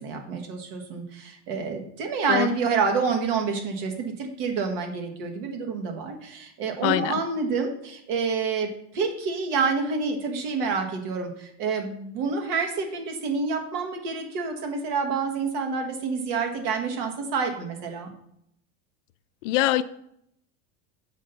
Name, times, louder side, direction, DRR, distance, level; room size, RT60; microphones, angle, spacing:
voice 1, 0.0-8.7 8.9-18.1, right 5 dB, 50° right, 1.5 m, -28 dB
voice 2, 6.8-7.1 19.4-19.8, left 15 dB, 85° left, 0.5 m, -22 dB
7.5 x 4.0 x 5.6 m
cardioid pair, 180°, 36 cm